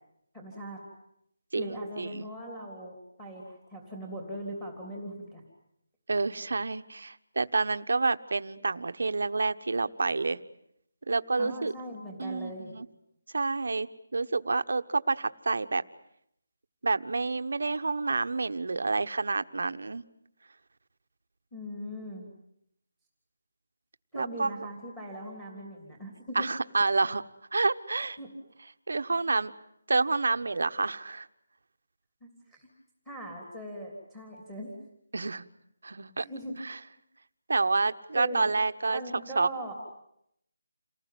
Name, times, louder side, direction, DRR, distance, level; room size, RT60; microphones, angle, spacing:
voice 1, 0.3-0.8 1.5-5.4 11.4-12.7 21.5-22.3 24.1-26.5 28.2-28.3 32.5-32.7 33.0-34.7 36.2-36.5 38.1-38.5 38.9-39.7, equal, 10° left, -1 dB, 3.1 m, -40 dB
voice 2, 1.5-2.3 6.1-10.4 11.1-11.7 12.2-12.9 13.3-15.8 16.8-20.0 24.1-24.6 26.3-27.2 27.5-28.2 28.9-29.5 29.9-31.3 35.1-35.5 35.8-36.2 36.6-36.8 37.5-39.0 39.3-39.5, right 3 dB, 60° right, 10 dB, 1.2 m, -28 dB
28.5 x 19.5 x 9.4 m, 0.75 s
hypercardioid pair, 180°, 0 cm